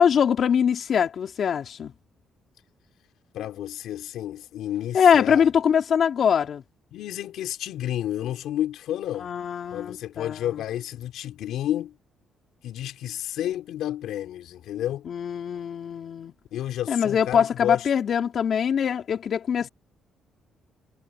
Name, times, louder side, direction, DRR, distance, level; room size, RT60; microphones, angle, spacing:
voice 1, 0.0-1.9 4.9-6.6 9.2-10.4 15.1-16.3 16.9-19.7, left 7 dB, 55° left, 3.6 m, -22 dB
voice 2, 3.3-5.5 6.9-9.3 9.7-12.0 12.6-15.1 16.5-17.9, left 12 dB, 80° left, 3.7 m, -31 dB
cardioid pair, 90°, 0 cm